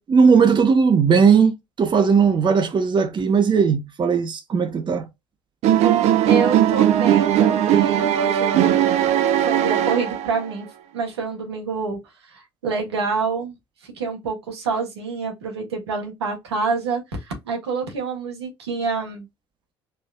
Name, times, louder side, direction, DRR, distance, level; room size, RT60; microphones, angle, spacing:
voice 1, 0.0-5.1, right 6 dB, 35° right, 0.9 m, -17 dB
sound 1, 5.6-10.5, right 11 dB, 55° right, 0.7 m, -18 dB
voice 2, 6.3-9.0 9.4-10.7 10.9-13.5 13.8-19.3, right 4 dB, 80° right, 1.5 m, -27 dB
4.5 x 3.2 x 2.4 m
figure-of-eight pair, 55°, 14 cm